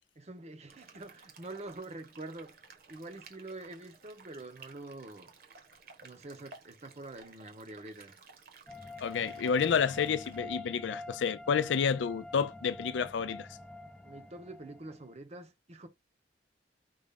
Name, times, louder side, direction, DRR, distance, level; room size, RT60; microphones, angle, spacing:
voice 1, 0.2-2.6 2.9-5.3 6.0-8.2 14.0-15.9, right 2 dB, 35° right, 0.8 m, -46 dB
sound 1, 0.7-10.4, right 5 dB, 55° right, 1.2 m, -56 dB
sound 2, 8.7-15.1, left 2 dB, 5° left, 0.4 m, -46 dB
voice 2, 9.0-13.5, left 6 dB, 85° left, 0.4 m, -30 dB
5.4 x 2.4 x 3.5 m
head